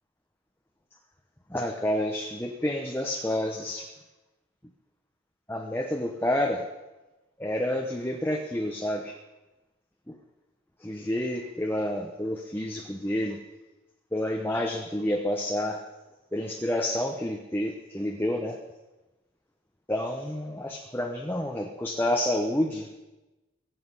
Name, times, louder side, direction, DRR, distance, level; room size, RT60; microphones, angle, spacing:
voice 1, 1.5-3.9 5.5-6.7 7.4-9.1 10.1-10.2 10.8-13.4 14.1-15.8 16.3-18.6 19.9-22.9, left 1 dB, 10° left, 1 dB, 0.9 m, -29 dB
22.0 x 7.8 x 5.5 m, 1.1 s
head